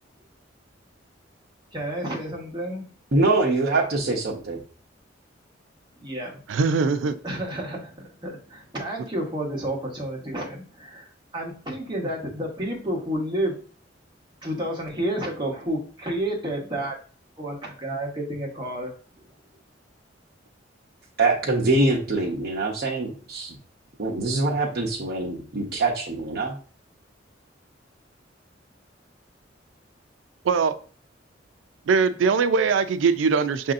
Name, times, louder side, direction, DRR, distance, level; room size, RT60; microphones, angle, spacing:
voice 1, 1.7-2.9 6.0-6.4 7.2-11.1 11.3-13.6 14.4-16.9 17.4-18.9, right 1 dB, 25° right, -2 dB, 1.1 m, -30 dB
voice 2, 3.1-4.6 21.2-23.5 24.0-26.6, right 2 dB, 55° right, -4 dB, 0.7 m, -24 dB
voice 3, 6.5-7.2 30.4-30.8 31.9-33.7, right 5 dB, 85° right, 10 dB, 0.4 m, -21 dB
5.9 x 2.7 x 2.5 m, 0.40 s
head